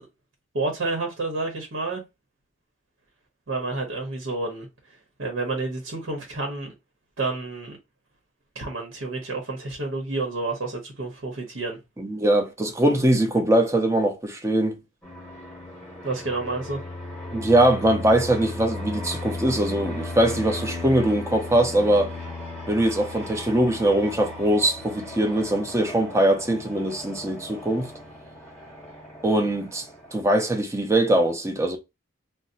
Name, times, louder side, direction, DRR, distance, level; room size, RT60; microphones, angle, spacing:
voice 1, 0.5-2.0 3.5-4.7 5.2-6.7 7.2-7.8 8.5-11.8 16.0-16.8, right 3 dB, 85° right, 0.9 m, -29 dB
voice 2, 12.0-14.8 17.3-22.1 22.7-27.9 29.2-29.8 30.1-31.8, right 1 dB, 15° right, 0.5 m, -22 dB
Fixed-wing aircraft airplane, 15.0-30.2, left 2 dB, 5° left, 0.9 m, -36 dB
2.6 x 2.0 x 3.9 m
head